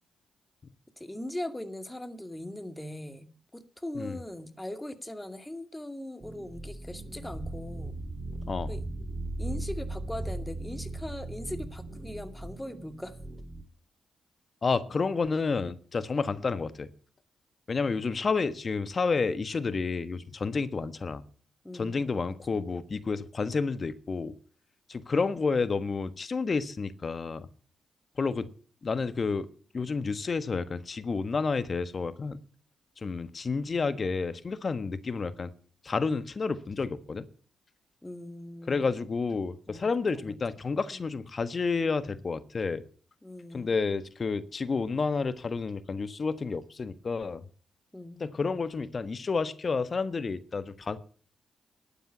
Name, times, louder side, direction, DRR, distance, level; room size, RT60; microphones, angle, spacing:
voice 1, 1.0-8.0 8.7-8.8 9.4-13.2 21.6-22.0 22.5-22.6 38.0-38.9 39.7-40.4 40.9-41.1 43.2-43.8 47.9-48.3, left 1 dB, 10° left, 10 dB, 2.3 m, -40 dB
sound 1, 6.2-13.6, right 2 dB, 30° right, 2.5 m, -38 dB
voice 2, 14.6-16.9 17.7-21.2 21.7-24.3 24.9-27.5 28.2-28.5 28.8-29.5 29.7-32.4 33.0-35.5 35.8-37.2 38.7-42.8 43.5-47.4 48.2-51.0, left 4 dB, 45° left, 14 dB, 1.3 m, -30 dB
12.5 x 9.0 x 8.3 m, 0.43 s
supercardioid pair, 50°, 0 cm